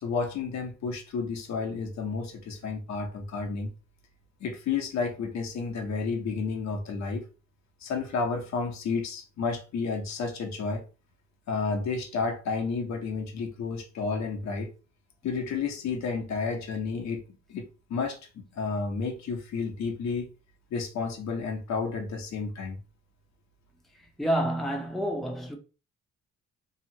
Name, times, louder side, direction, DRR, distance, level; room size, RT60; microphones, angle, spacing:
voice 1, 0.0-3.7 4.4-7.3 7.8-10.8 11.5-14.7 15.2-17.2 17.5-20.3 20.7-22.8, left 4 dB, 65° left, 0.8 m, -31 dB
voice 2, 24.0-25.6, right 1 dB, ahead, 0.7 m, -29 dB
2.8 x 2.4 x 2.8 m
cardioid pair, 90°, 30 cm